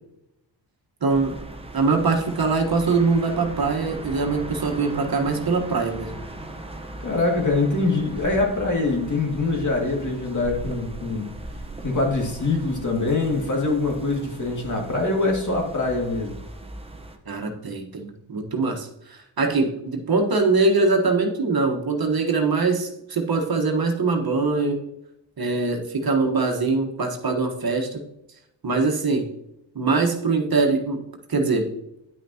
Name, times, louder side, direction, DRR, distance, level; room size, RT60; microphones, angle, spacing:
voice 1, 1.0-1.3 1.7-6.1 17.3-24.8 25.4-28.0 28.6-29.3 29.7-31.0 31.3-31.7, right 3 dB, 50° right, 3 dB, 1.4 m, -22 dB
sound 1, 1.1-17.2, right 1 dB, 10° right, 1.0 m, -38 dB
voice 2, 7.0-11.3 11.8-16.4, left 3 dB, 40° left, 0 dB, 2.2 m, -24 dB
10.0 x 5.9 x 2.9 m, 0.83 s
cardioid pair, 90°, 47 cm